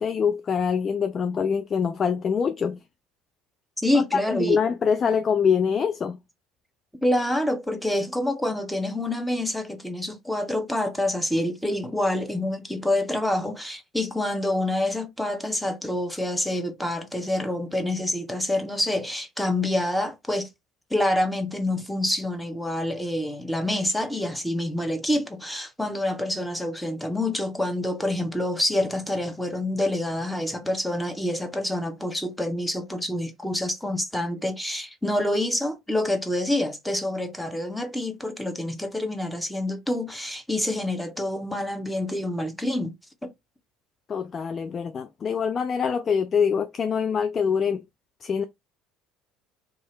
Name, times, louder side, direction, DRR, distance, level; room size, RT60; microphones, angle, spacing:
voice 1, 0.0-2.8 4.1-6.2 44.1-47.8 48.2-48.4, left 6 dB, 35° left, 0.3 m, -24 dB
voice 2, 3.8-4.6 7.0-20.5 20.9-42.9, left 1 dB, 5° left, 0.8 m, -27 dB
2.6 x 2.4 x 3.0 m
hypercardioid pair, 60°, 0 cm